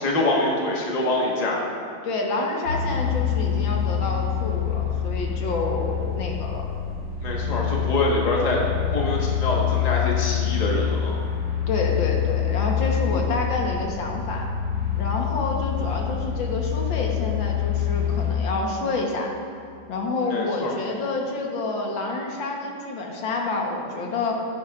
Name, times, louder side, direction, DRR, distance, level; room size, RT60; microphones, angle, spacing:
voice 1, 0.0-1.6 7.2-8.6 8.9-11.1 20.3-20.7, left 2 dB, 25° left, -3 dB, 1.2 m, -25 dB
voice 2, 2.0-6.6 11.7-14.5 15.0-19.3 19.9-24.5, left 3 dB, 70° left, 0 dB, 1.8 m, -28 dB
sound 1, 2.7-18.3, left 9 dB, 50° left, 2.7 m, -26 dB
14.5 x 10.0 x 2.4 m, 2.2 s
omnidirectional pair, 2.3 m